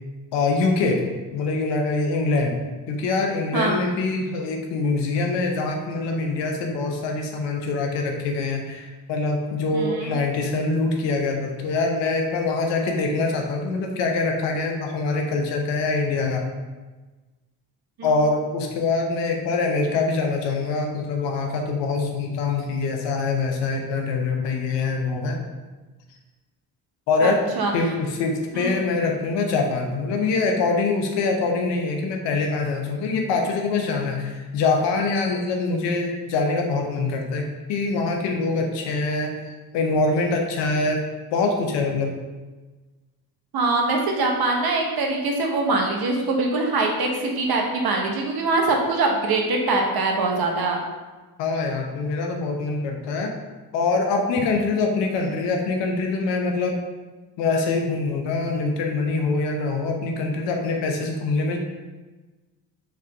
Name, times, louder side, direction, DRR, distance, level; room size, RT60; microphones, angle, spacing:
voice 1, 0.3-1.0 1.3-2.6 2.9-16.4 18.0-25.4 27.1-27.4 27.7-39.3 39.7-41.0 41.3-42.2 51.4-53.3 53.7-56.8 57.4-61.6, left 3 dB, 85° left, 2 dB, 0.7 m, -24 dB
voice 2, 9.7-10.1 18.0-18.1 27.2-27.7 28.5-28.8 43.5-50.8, right 3 dB, 60° right, 1 dB, 1.0 m, -23 dB
3.3 x 3.3 x 3.8 m, 1.2 s
supercardioid pair, 50°, 42 cm